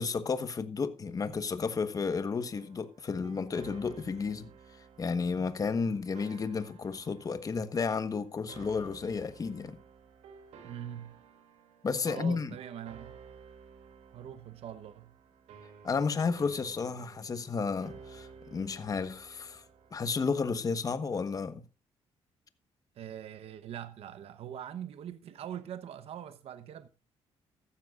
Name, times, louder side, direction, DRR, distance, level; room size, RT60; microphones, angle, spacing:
voice 1, 0.0-4.5 5.0-9.8 11.8-12.5 15.8-19.6 19.9-21.6, left 5 dB, 35° left, 1.3 m, -32 dB
sound 1, 2.3-20.2, right 6 dB, 90° right, 2.7 m, -54 dB
voice 2, 10.6-11.2 12.1-13.2 14.1-15.1 22.9-26.9, right 10 dB, 65° right, 0.9 m, -42 dB
14.5 x 13.0 x 2.5 m
cardioid pair, 120°, 11 cm